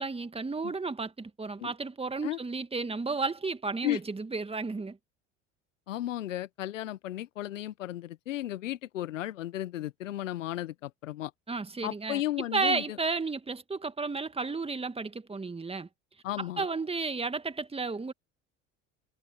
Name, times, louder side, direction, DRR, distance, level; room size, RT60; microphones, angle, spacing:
voice 1, 0.0-5.0 11.5-15.9 16.4-18.1, right 4 dB, 15° right, 2.0 m, -33 dB
voice 2, 5.9-11.3 11.8-13.0 16.2-16.7, left 14 dB, 85° left, 1.4 m, -34 dB
hypercardioid pair, 70°, 37 cm